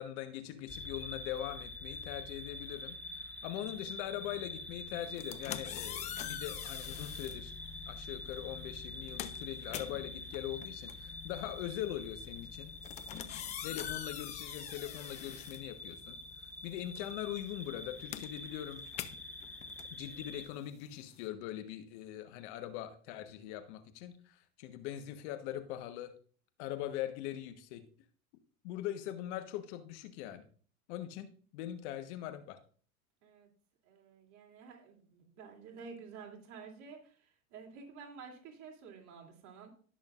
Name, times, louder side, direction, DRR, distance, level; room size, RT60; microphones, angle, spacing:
voice 1, 0.0-3.0 3.4-7.5 7.9-12.7 13.6-16.2 16.6-18.8 19.9-26.1 26.6-27.8 28.6-30.4 30.9-32.6, left 12 dB, 55° left, 8 dB, 1.3 m, -41 dB
sound 1, 0.7-20.5, left 2 dB, 5° left, 1.1 m, -46 dB
sound 2, 5.0-7.4 8.3-8.5 8.8-16.3 16.6-21.3, left 12 dB, 20° left, 0.3 m, -44 dB
voice 2, 13.1-13.5 33.2-33.5 33.8-37.1 37.5-39.7, right 5 dB, 40° right, 0 dB, 2.9 m, -51 dB
17.0 x 6.3 x 2.5 m, 0.44 s
hypercardioid pair, 100°, 42 cm